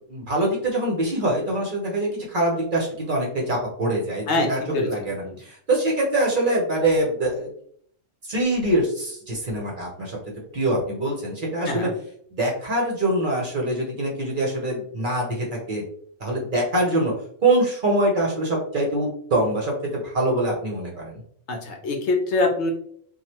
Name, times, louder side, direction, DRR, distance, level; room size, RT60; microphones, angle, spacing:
voice 1, 0.1-7.5 8.2-10.2 10.5-11.9 12.3-15.8 16.2-17.1 17.4-21.2, right 1 dB, 50° right, -2 dB, 0.7 m, -24 dB
voice 2, 4.3-5.4 11.7-11.9 21.5-22.7, left 2 dB, 65° left, 2 dB, 0.8 m, -24 dB
3.1 x 2.3 x 2.8 m, 0.64 s
omnidirectional pair, 1.3 m